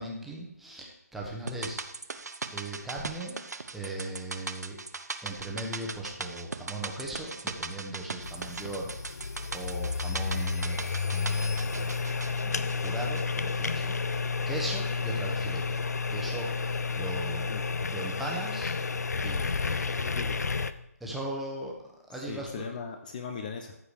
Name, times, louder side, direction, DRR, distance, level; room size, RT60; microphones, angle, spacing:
voice 1, 0.0-1.8 2.5-3.4 3.7-4.8 5.2-11.9 12.4-13.9 14.5-15.8 16.1-17.5 17.9-18.7 19.2-20.0 21.0-21.8 22.1-22.6, right 1 dB, ahead, -3 dB, 1.2 m, -38 dB
sound 1, 1.5-13.8 14.1-14.2, right 3 dB, 90° right, 0.9 m, -39 dB
sound 2, 8.2-20.7, left 4 dB, 75° left, 0.7 m, -31 dB
voice 2, 20.0-20.4 22.3-23.8, left 6 dB, 30° left, 6 dB, 0.8 m, -38 dB
14.0 x 4.9 x 4.9 m, 0.86 s
hypercardioid pair, 160°, 9 cm